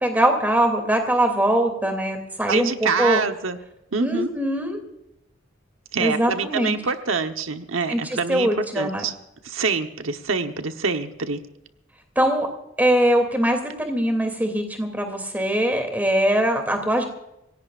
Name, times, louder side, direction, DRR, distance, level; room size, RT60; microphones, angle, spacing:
voice 1, 0.0-3.2 4.0-4.8 6.0-6.8 7.9-9.0 12.1-12.5 12.8-17.0, right 1 dB, 10° right, 4 dB, 2.8 m, -22 dB
voice 2, 2.5-3.6 3.9-4.3 5.9-8.5 8.7-9.1 9.4-11.4, right 5 dB, 85° right, 6 dB, 1.1 m, -25 dB
27.0 x 17.5 x 2.5 m, 0.86 s
head